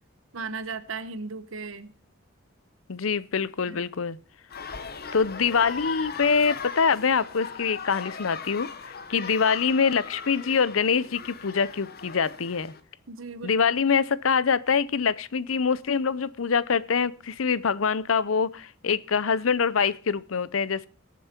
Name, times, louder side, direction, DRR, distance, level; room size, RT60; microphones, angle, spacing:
voice 1, 0.3-1.9 3.7-3.8 13.1-13.6, right 4 dB, 85° right, 1.0 m, -36 dB
voice 2, 2.9-4.2 5.1-12.7 13.4-20.9, left 6 dB, 85° left, 0.7 m, -25 dB
sound 1, 4.5-12.8, left 5 dB, 50° left, 1.2 m, -38 dB
21.5 x 7.3 x 4.4 m
head